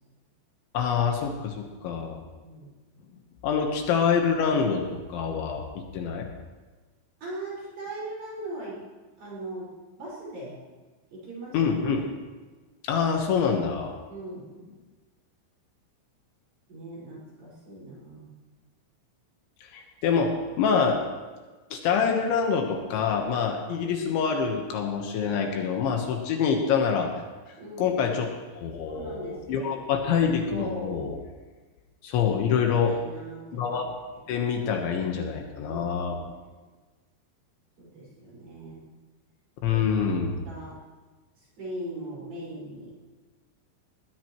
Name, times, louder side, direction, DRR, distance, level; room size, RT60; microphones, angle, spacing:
voice 1, 0.7-2.2 3.4-6.3 11.5-12.1 12.8-14.0 19.7-21.1 21.7-27.1 27.8-28.3 28.6-31.2 32.0-33.0 33.5-33.9 34.3-36.2 39.6-40.3, left 6 dB, 75° left, 2 dB, 3.4 m, -26 dB
voice 2, 2.4-2.8 7.2-8.8 9.2-9.7 10.0-10.6 11.1-11.6 14.1-14.5 16.7-18.3 27.6-28.0 28.8-29.8 30.5-31.1 32.9-33.8 35.7-36.3 37.8-38.9 39.7-39.8 40.1-40.8 41.6-42.9, right 1 dB, 45° right, -6 dB, 7.2 m, -39 dB
21.0 x 18.0 x 3.1 m, 1.3 s
omnidirectional pair, 5.7 m